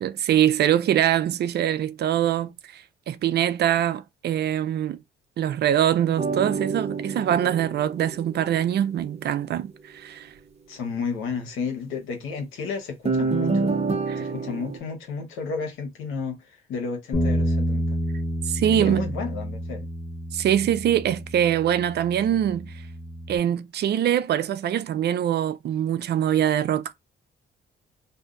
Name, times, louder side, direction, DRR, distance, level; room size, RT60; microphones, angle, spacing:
voice 1, 0.0-5.0 5.4-10.3 14.1-14.3 18.5-19.1 20.3-22.7 23.3-26.9, right 10 dB, 55° right, 0.4 m, -23 dB
sound 1, 6.2-8.8 13.1-14.8, right 4 dB, 35° right, 0.8 m, -27 dB
voice 2, 10.7-13.7 14.2-18.0 18.7-19.9, left 5 dB, 90° left, 1.0 m, -32 dB
Bass guitar, 17.1-23.4, equal, 50° left, 1.0 m, -29 dB
2.6 x 2.2 x 3.7 m
cardioid pair, 90°, 20 cm